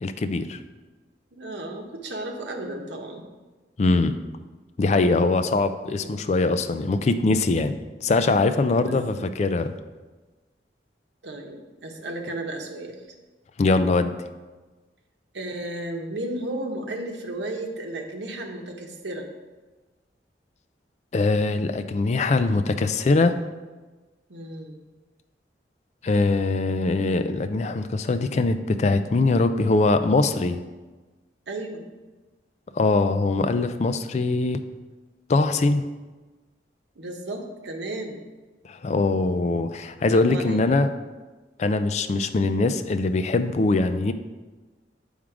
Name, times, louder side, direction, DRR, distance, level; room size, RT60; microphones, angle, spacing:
voice 1, 0.0-0.6 3.8-4.1 4.8-9.7 13.6-14.1 21.1-23.4 26.0-30.6 32.7-34.6 35.3-35.8 38.6-40.9 41.6-44.1, left 3 dB, 40° left, 10 dB, 0.4 m, -22 dB
voice 2, 1.3-3.2 5.5-6.1 8.7-9.2 11.2-13.0 15.3-19.3 24.3-24.8 31.5-31.8 37.0-38.2 40.1-40.6, right 1 dB, 90° right, 3 dB, 0.9 m, -34 dB
7.4 x 3.6 x 4.8 m, 1.2 s
head